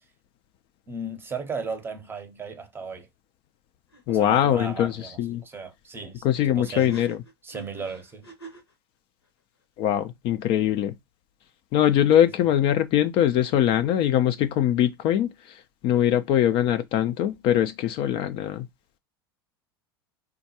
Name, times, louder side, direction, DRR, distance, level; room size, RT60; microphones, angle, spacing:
voice 1, 0.9-3.1 4.1-6.3 6.5-7.0 7.4-8.3, right 4 dB, 15° right, 0.7 m, -36 dB
sound 1, 3.9-4.0 4.3-4.4 6.6-8.7, right 3 dB, 90° left, 1.0 m, -45 dB
voice 2, 4.1-5.4 6.2-7.2 9.8-10.9 11.7-18.7, left 11 dB, 45° left, 0.4 m, -22 dB
3.4 x 2.2 x 2.7 m
figure-of-eight pair, 80°, 13 cm